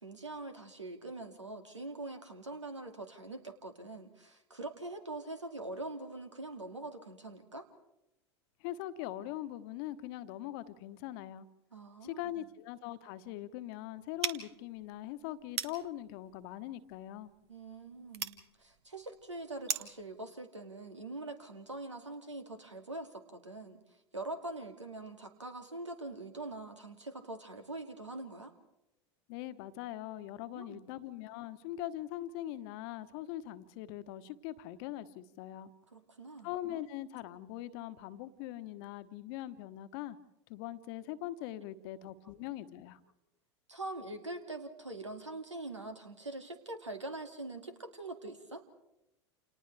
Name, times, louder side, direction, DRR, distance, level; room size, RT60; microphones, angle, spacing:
voice 1, 0.0-7.7 11.7-12.4 17.5-23.8 24.1-28.5 30.5-30.9 35.9-36.5 43.7-48.6, right 2 dB, 90° right, 6 dB, 2.3 m, -43 dB
voice 2, 8.6-11.5 12.0-17.3 29.3-35.7 36.4-40.2 40.5-43.0, left 13 dB, 55° left, 12 dB, 1.2 m, -42 dB
sound 1, 14.2-20.0, right 8 dB, 65° right, 1.5 m, -41 dB
29.0 x 28.5 x 3.4 m, 0.89 s
figure-of-eight pair, 85°, 15 cm